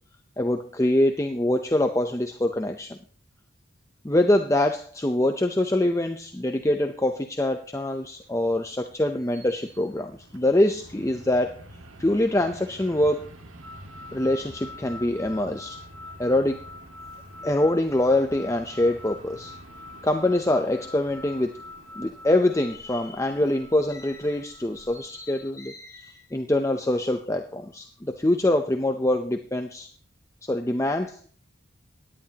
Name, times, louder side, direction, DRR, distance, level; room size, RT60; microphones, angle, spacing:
voice 1, 0.4-3.0 4.0-11.6 12.0-13.2 14.1-15.8 16.2-16.6 17.4-19.5 20.0-21.6 22.0-29.9 30.5-31.2, left 1 dB, 15° left, 5 dB, 0.6 m, -24 dB
Fixed-wing aircraft airplane, 7.7-25.6, right 1 dB, 90° right, 1.8 m, -49 dB
sound 1, 13.6-25.6, left 2 dB, 65° right, 5.0 m, -45 dB
17.5 x 10.5 x 2.9 m, 0.43 s
head